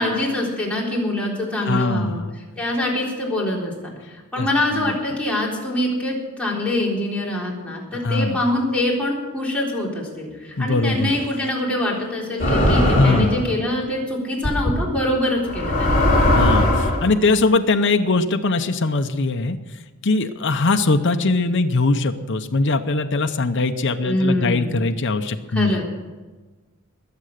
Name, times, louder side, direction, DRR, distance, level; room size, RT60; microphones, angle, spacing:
voice 1, 0.0-2.2 2.6-16.0 24.0-24.8 25.5-25.8, left 1 dB, 5° left, -5 dB, 3.9 m, -24 dB
voice 2, 1.6-2.4 4.4-4.5 4.7-5.0 8.0-8.4 10.5-11.3 12.9-13.4 16.3-19.6 20.0-25.8, left 3 dB, 60° left, 6 dB, 0.8 m, -21 dB
sound 1, 12.4-13.4 14.4-14.7 15.5-17.1, left 1 dB, 40° left, 4.9 m, -18 dB
21.0 x 7.7 x 6.6 m, 1.3 s
head